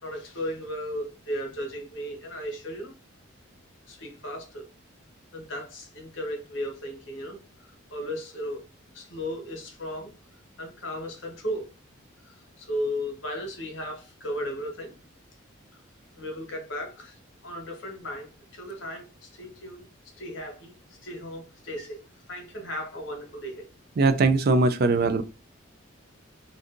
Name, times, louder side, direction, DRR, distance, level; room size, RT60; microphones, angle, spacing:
voice 1, 0.0-2.9 3.9-4.6 5.3-8.6 8.9-10.1 10.6-11.7 12.2-14.9 15.7-15.8 16.2-22.0 22.3-23.7, equal, 60° left, 1.0 m, -36 dB
voice 2, 24.0-25.2, right 3 dB, 50° right, 0.3 m, -21 dB
2.6 x 2.5 x 3.5 m
head